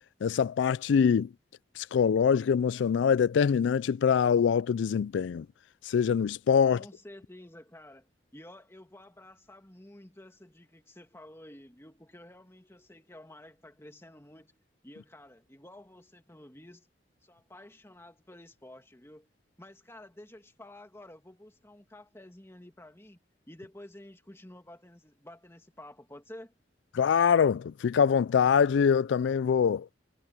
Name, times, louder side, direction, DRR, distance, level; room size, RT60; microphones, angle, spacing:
voice 1, 0.2-1.3 1.8-5.5 5.9-6.8 26.9-29.9, left 7 dB, 80° left, 0.3 m, -24 dB
voice 2, 6.7-16.9 17.2-19.3 19.6-23.2 23.5-26.5, left 1 dB, 15° left, 2.0 m, -51 dB
head